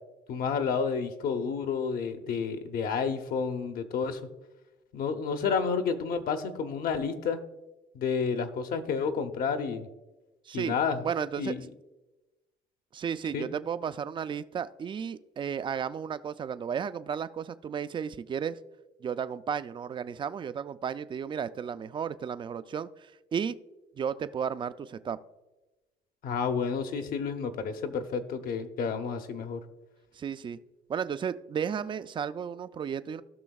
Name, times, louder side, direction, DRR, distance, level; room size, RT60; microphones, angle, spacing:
voice 1, 0.3-4.2 4.9-7.4 7.9-9.9 10.5-11.0 11.4-11.6 13.3-13.5 26.2-29.6, left 5 dB, 60° left, 7 dB, 0.9 m, -30 dB
voice 2, 10.5-10.8 11.0-11.5 12.9-18.6 19.0-23.6 24.0-25.2 30.1-30.6 30.9-33.2, right 7 dB, 30° right, 13 dB, 0.4 m, -33 dB
16.5 x 6.1 x 2.3 m, 1.1 s
cardioid pair, 110°, 17 cm